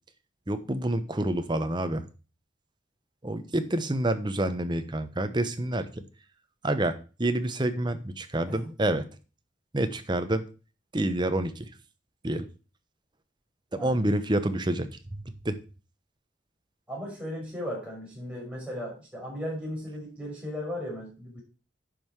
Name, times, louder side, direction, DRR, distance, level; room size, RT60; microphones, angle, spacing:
voice 1, 0.5-2.1 3.2-6.0 6.6-9.1 9.7-10.4 10.9-11.7 12.2-12.5 13.7-15.6, right 1 dB, 25° right, 9 dB, 0.9 m, -28 dB
voice 2, 16.9-21.4, equal, 5° right, -2 dB, 5.3 m, -36 dB
10.0 x 5.6 x 4.7 m, 0.34 s
head